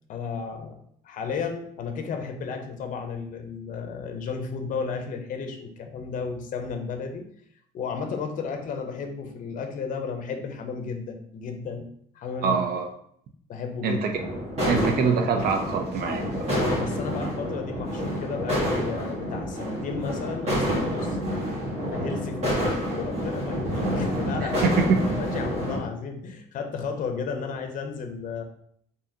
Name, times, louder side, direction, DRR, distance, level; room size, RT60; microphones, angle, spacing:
voice 1, 0.1-0.8 1.0-7.2 7.7-11.9 12.1-12.6 13.5-14.0 16.5-21.2 21.9-24.8 25.2-28.4, left 5 dB, 50° left, 5 dB, 0.6 m, -33 dB
voice 2, 12.4-12.9 13.8-14.1 14.7-16.5 24.4-25.0, right 5 dB, 65° right, 4 dB, 0.5 m, -24 dB
sound 1, 14.1-25.8, equal, 40° right, 1.4 m, -28 dB
3.5 x 2.7 x 2.7 m, 0.66 s
cardioid pair, 110°, 17 cm